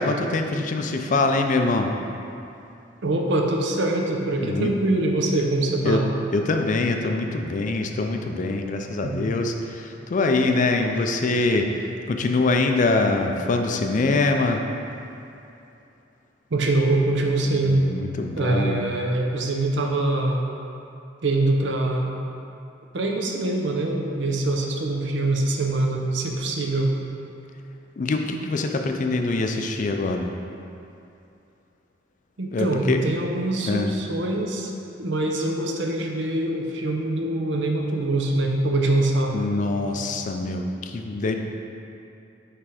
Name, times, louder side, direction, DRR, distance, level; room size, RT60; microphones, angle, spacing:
voice 1, 0.0-1.9 4.4-4.7 5.8-6.0 6.3-14.6 17.6-18.8 28.0-30.3 32.5-33.0 33.7-33.9 39.3-41.4, left 3 dB, 45° left, 4 dB, 0.4 m, -24 dB
voice 2, 3.0-6.0 9.0-9.2 16.5-17.8 18.4-20.4 21.2-22.1 22.9-26.9 32.4-34.7 35.0-39.4, right 2 dB, 70° right, 1 dB, 0.6 m, -24 dB
6.0 x 3.3 x 4.9 m, 2.7 s
head